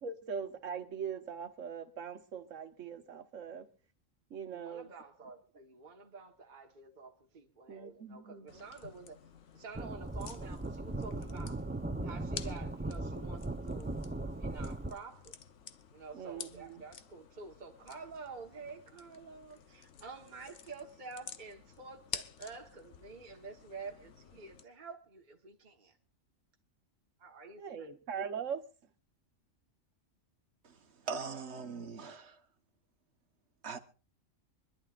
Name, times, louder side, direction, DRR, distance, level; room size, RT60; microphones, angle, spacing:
voice 1, 0.0-3.7 4.3-4.9 7.7-8.6 16.1-16.8 27.6-28.6, right 6 dB, 70° right, 1.6 m, -41 dB
voice 2, 4.5-9.2 9.5-11.6 12.0-13.9 14.4-15.4 15.9-25.9 27.2-27.9 31.1-31.7, right 4 dB, 35° right, 1.6 m, -49 dB
sound 1, 8.5-24.6, left 7 dB, 65° left, 1.3 m, -51 dB
sound 2, 9.7-14.9, right 2 dB, 10° right, 0.5 m, -38 dB
voice 3, 30.6-32.4 33.6-33.9, right 5 dB, 55° right, 1.5 m, -42 dB
25.5 x 11.5 x 2.5 m
omnidirectional pair, 1.4 m